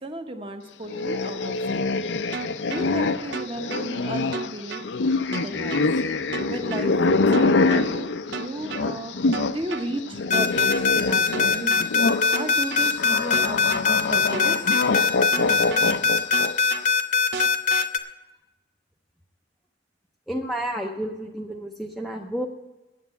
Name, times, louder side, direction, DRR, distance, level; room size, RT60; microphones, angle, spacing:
voice 1, 0.0-1.9 2.6-4.8 5.4-5.8 6.4-8.1 8.4-11.9 12.3-14.6, right 1 dB, 30° right, 6 dB, 0.9 m, -34 dB
sound 1, 0.9-9.6 9.9-16.7, left 3 dB, 70° left, 0.5 m, -25 dB
sound 2, 2.3-2.9 3.3-3.9 4.3-4.9 5.3-5.9 6.3-6.9 7.3-7.9 8.3-8.9 9.3-9.9 10.3-10.9 11.3-11.9 12.3-12.9 13.3-13.9 14.3-14.9 15.3-15.9 16.3-16.9 17.3-17.9, right 4 dB, 70° right, 0.6 m, -33 dB
sound 3, 10.3-18.0, left 5 dB, 40° left, 0.8 m, -21 dB
voice 2, 20.3-22.5, right 1 dB, ahead, 0 dB, 0.5 m, -30 dB
9.5 x 8.0 x 8.2 m, 1.0 s
head